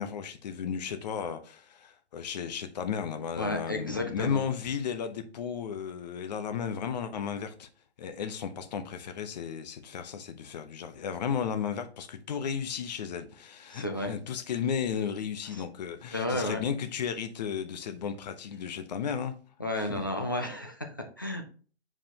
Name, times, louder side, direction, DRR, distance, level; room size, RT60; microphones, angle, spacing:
voice 1, 0.0-7.7 8.0-19.3 19.8-20.0, left 7 dB, 40° left, 0.7 m, -34 dB
voice 2, 3.4-4.4 13.7-14.1 16.1-16.6 19.6-21.4, left 1 dB, 20° left, 0.4 m, -32 dB
7.5 x 4.9 x 2.8 m
hypercardioid pair, 165°, 34 cm